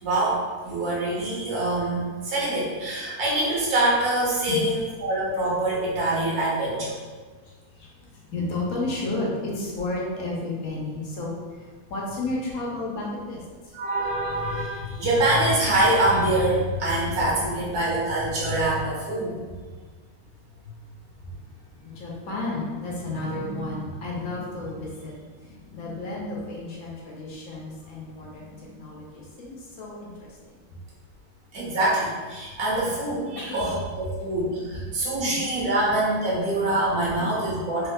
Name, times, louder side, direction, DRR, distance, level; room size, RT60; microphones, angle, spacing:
voice 1, 0.0-7.0 13.7-19.3 31.5-37.9, right 1 dB, 85° right, -6 dB, 1.5 m, -25 dB
voice 2, 7.8-13.7 17.4-17.5 21.8-25.1 25.4-30.4 32.7-32.9 33.4-33.7 34.8-35.4 37.2-37.4, left 2 dB, 70° left, -4 dB, 1.1 m, -32 dB
3.5 x 2.7 x 2.2 m, 1.4 s
omnidirectional pair, 1.6 m